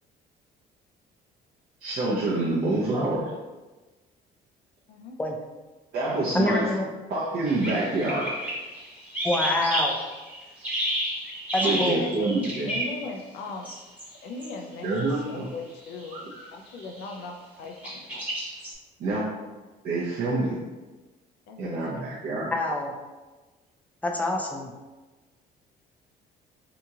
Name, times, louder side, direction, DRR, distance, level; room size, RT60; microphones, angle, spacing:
voice 1, 1.8-3.3 5.9-6.7 7.1-8.3 11.6-12.7 14.8-15.5 16.1-16.4 19.0-19.3 19.8-20.6 21.6-22.5, right 2 dB, 60° right, -7 dB, 0.6 m, -27 dB
voice 2, 6.3-6.9 9.2-10.0 11.5-12.0 22.5-22.9 24.0-24.7, left 2 dB, 10° left, 1 dB, 0.4 m, -26 dB
sound 1, 7.5-13.1 13.6-14.1 14.4-14.5 14.9-15.1 15.8-16.1 16.8-17.1 17.8-18.7, equal, 10° right, 0.8 m, -31 dB
voice 3, 11.6-12.3 12.7-13.7 14.2-18.3 19.3-19.4 21.5-22.2, left 3 dB, 85° left, 3 dB, 0.4 m, -39 dB
2.8 x 2.7 x 2.3 m, 1.2 s
cardioid pair, 110°, 17 cm